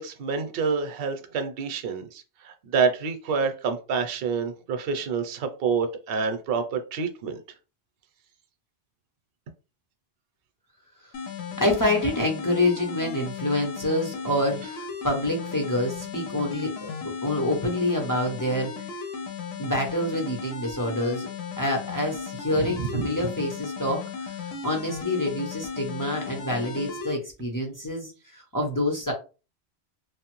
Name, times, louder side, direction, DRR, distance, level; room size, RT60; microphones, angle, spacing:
voice 1, 0.0-7.4 22.6-23.3, right 5 dB, 65° right, 7 dB, 0.7 m, -28 dB
sound 1, 11.1-27.1, left 6 dB, 80° left, 0.8 m, -36 dB
voice 2, 11.6-16.9 17.2-18.7 19.6-21.3 21.6-29.1, left 1 dB, 25° left, 1 dB, 0.4 m, -27 dB
2.9 x 2.0 x 2.9 m, 0.32 s
omnidirectional pair, 1.1 m